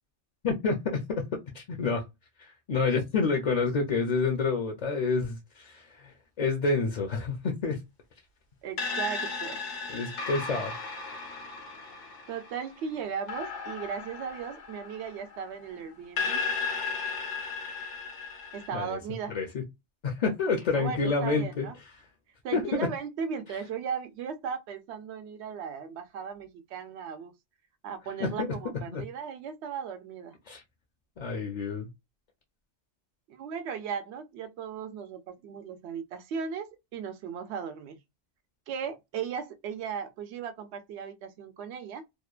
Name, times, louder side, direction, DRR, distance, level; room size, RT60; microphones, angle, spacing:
voice 1, 0.4-2.0 2.4-6.1 6.4-7.8 9.9-10.7 18.7-19.0 19.3-19.6 20.0-21.7 22.5-22.9 28.2-28.5 28.9-29.0 30.5-30.6 31.2-31.9, left 4 dB, 50° left, 0.5 m, -28 dB
voice 2, 8.6-9.6 12.3-16.4 18.5-19.4 20.7-21.7 22.4-27.3 27.8-30.3 33.3-38.0 38.7-42.0, right 7 dB, 75° right, 0.8 m, -37 dB
sound 1, 8.8-15.6 16.2-18.7, left 4 dB, 85° left, 1.2 m, -35 dB
2.8 x 2.1 x 2.3 m
omnidirectional pair, 1.2 m